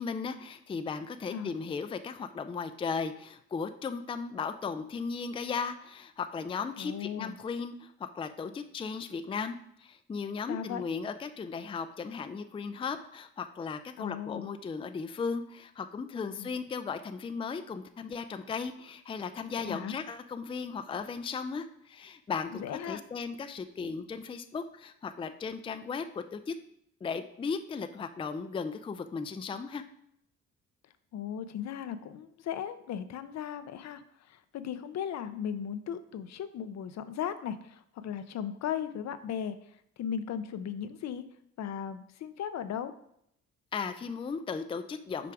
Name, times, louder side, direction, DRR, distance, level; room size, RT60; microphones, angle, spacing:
voice 1, 0.0-26.5 27.0-29.8 43.7-45.3, left 5 dB, 20° left, 9 dB, 0.4 m, -36 dB
voice 2, 6.8-7.4 10.5-10.8 14.0-14.5 16.4-16.5 19.6-19.9 22.6-23.0 31.1-34.0 34.3-39.6 40.0-41.2 41.6-42.9, left 8 dB, 65° left, 11 dB, 0.6 m, -37 dB
6.0 x 4.7 x 4.6 m, 0.73 s
cardioid pair, 90°, 30 cm